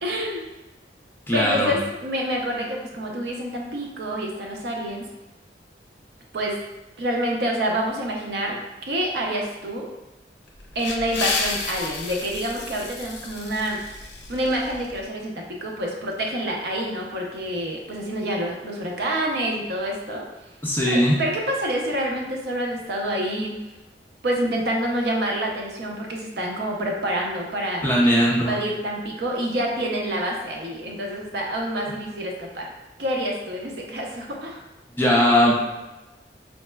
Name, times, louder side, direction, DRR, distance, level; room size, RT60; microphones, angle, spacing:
voice 1, 0.0-0.5 1.3-5.0 6.3-6.6 7.0-8.6 8.9-9.9 10.7-13.8 14.3-20.2 20.8-23.5 24.2-32.7 33.0-34.6, right 1 dB, 65° right, 0 dB, 0.5 m, -27 dB
voice 2, 1.3-1.7 20.6-21.2 27.8-28.6 35.0-35.6, equal, 10° left, -4 dB, 0.4 m, -19 dB
sound 1, 10.5-15.0, left 4 dB, 75° left, 0.5 m, -31 dB
4.1 x 2.0 x 2.2 m, 1.0 s
head